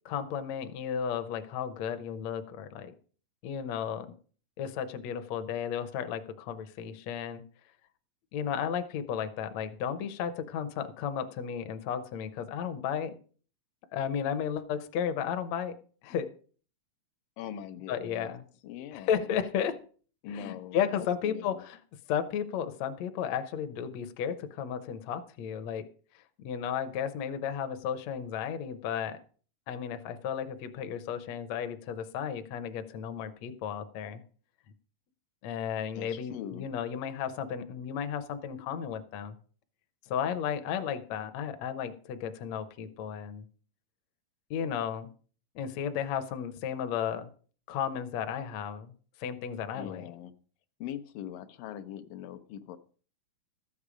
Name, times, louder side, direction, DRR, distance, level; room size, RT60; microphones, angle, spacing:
voice 1, 0.1-2.9 3.4-4.1 4.6-7.4 8.3-13.1 13.9-15.7 16.0-16.3 17.9-18.4 18.9-19.8 20.3-21.8 22.1-25.8 26.1-29.2 29.7-34.2 35.4-39.4 40.1-43.5 44.5-45.1 45.6-47.3 47.7-48.9 49.2-50.1, left 8 dB, 70° left, 9 dB, 1.9 m, -34 dB
voice 2, 17.4-18.3 18.6-19.3 20.2-21.6 36.0-36.7 49.7-50.4 50.8-52.8, left 10 dB, 90° left, 8 dB, 2.5 m, -42 dB
13.5 x 8.5 x 5.0 m, 0.42 s
omnidirectional pair, 3.8 m